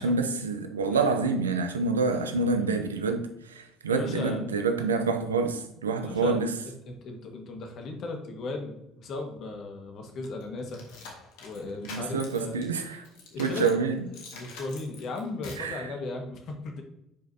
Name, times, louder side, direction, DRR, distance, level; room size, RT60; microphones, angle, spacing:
voice 1, 0.0-6.5 11.9-13.0 13.4-14.0 15.6-15.8, right 4 dB, 90° right, 0.7 m, -27 dB
voice 2, 3.9-4.4 6.0-10.8 11.4-12.6 13.3-13.7 14.3-16.8, left 3 dB, 55° left, 1.6 m, -37 dB
sound 1, 10.2-13.8 14.1-15.7, left 3 dB, 70° left, 1.6 m, -45 dB
10.0 x 5.2 x 2.8 m
hypercardioid pair, 60°, 0 cm